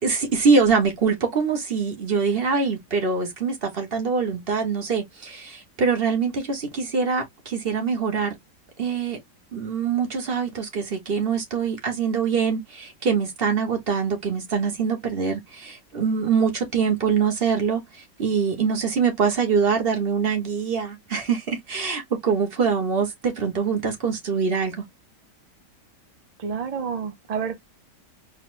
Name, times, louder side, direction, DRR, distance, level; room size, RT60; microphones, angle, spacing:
voice 1, 0.0-8.3 8.8-9.2 9.5-24.8, right 5 dB, 35° right, 1.3 m, -24 dB
voice 2, 26.4-27.6, right 6 dB, 60° right, 0.4 m, -29 dB
4.1 x 3.3 x 2.5 m
omnidirectional pair, 1.8 m